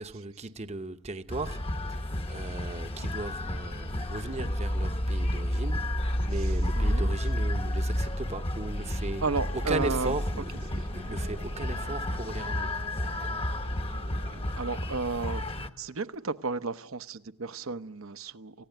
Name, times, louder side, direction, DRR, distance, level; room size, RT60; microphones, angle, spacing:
voice 1, 0.0-1.6 1.9-12.8, right 2 dB, 30° right, 0.9 m, -37 dB
sound 1, 1.3-15.7, left 1 dB, 25° left, 0.9 m, -31 dB
voice 2, 6.8-7.1 9.2-10.1 14.6-15.4 15.8-18.5, right 4 dB, 65° right, 0.9 m, -32 dB
sound 2, 9.1-16.5, right 3 dB, 80° right, 2.1 m, -52 dB
28.0 x 16.0 x 9.2 m
head